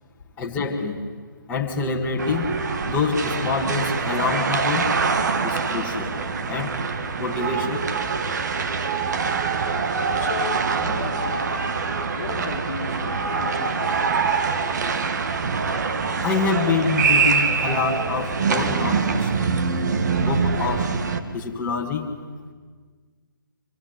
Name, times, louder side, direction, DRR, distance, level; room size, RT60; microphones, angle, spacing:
voice 1, 0.4-1.0 1.5-2.5 2.8-4.9 5.4-6.1 6.5-6.7 7.2-7.9 16.2-19.5 20.2-20.9 21.3-22.1, left 4 dB, 10° left, -2 dB, 2.7 m, -26 dB
sound 1, 2.2-21.2, right 5 dB, 55° right, 2.1 m, -24 dB
voice 2, 10.1-11.4 12.1-14.0, left 5 dB, 50° left, 4 dB, 2.2 m, -35 dB
26.0 x 22.0 x 10.0 m, 1.5 s
figure-of-eight pair, 150°, 12 cm